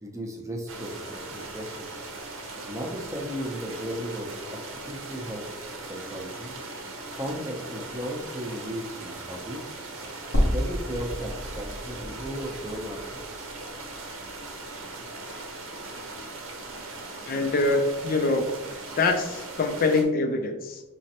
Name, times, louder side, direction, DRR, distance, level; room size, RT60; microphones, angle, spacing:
voice 1, 0.0-1.9 2.6-5.4 5.8-6.6 7.1-9.7 10.3-13.5, equal, 15° right, 0 dB, 0.6 m, -36 dB
sound 1, 0.7-20.0, right 2 dB, 85° right, 0.8 m, -39 dB
sound 2, 10.3-14.5 14.9-15.0 16.4-16.5, equal, 75° left, 0.9 m, -30 dB
voice 2, 17.2-18.5 19.0-20.8, left 3 dB, 45° left, 5 dB, 0.4 m, -24 dB
5.0 x 3.1 x 2.9 m, 1.0 s
head